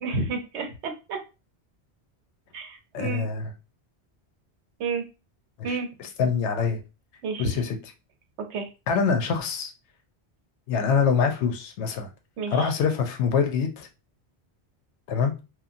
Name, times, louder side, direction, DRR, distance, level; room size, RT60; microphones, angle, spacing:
voice 1, 0.0-1.2 2.5-3.3 4.8-5.0 5.6-5.9 7.2-7.6 8.4-8.7 12.4-12.7, right 3 dB, 90° right, 5 dB, 1.0 m, -30 dB
voice 2, 2.9-3.5 5.6-6.8 7.4-7.8 8.9-9.7 10.7-12.1 12.5-13.9 15.1-15.3, left 6 dB, 90° left, 5 dB, 0.9 m, -25 dB
2.9 x 2.2 x 2.5 m, 0.28 s
omnidirectional pair, 1.1 m